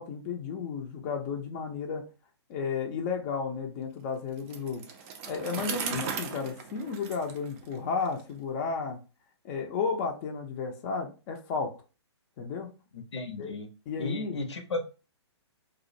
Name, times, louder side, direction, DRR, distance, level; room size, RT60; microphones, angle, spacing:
voice 1, 0.0-2.0 2.5-4.8 5.2-9.0 9.4-11.7 12.4-12.7 13.4-13.5 13.9-14.4, left 5 dB, 30° left, 2 dB, 0.5 m, -33 dB
Bicycle, 4.4-8.2, right 6 dB, 30° right, 0.4 m, -38 dB
voice 2, 12.9-13.7 14.0-14.8, left 2 dB, 75° left, 6 dB, 0.7 m, -34 dB
2.4 x 2.0 x 2.6 m, 0.32 s
hypercardioid pair, 135°, 15 cm